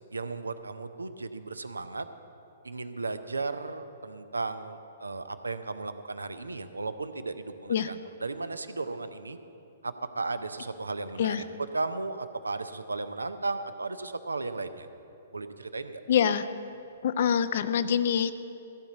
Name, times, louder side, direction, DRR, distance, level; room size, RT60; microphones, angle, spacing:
voice 1, 0.1-2.1 2.6-9.4 9.8-11.4 11.7-14.9 15.3-16.0, right 3 dB, 80° right, 11 dB, 0.6 m, -35 dB
voice 2, 16.1-16.5 17.0-18.3, left 8 dB, 55° left, 13 dB, 0.5 m, -25 dB
15.0 x 5.3 x 8.0 m, 2.8 s
figure-of-eight pair, 120°, 0 cm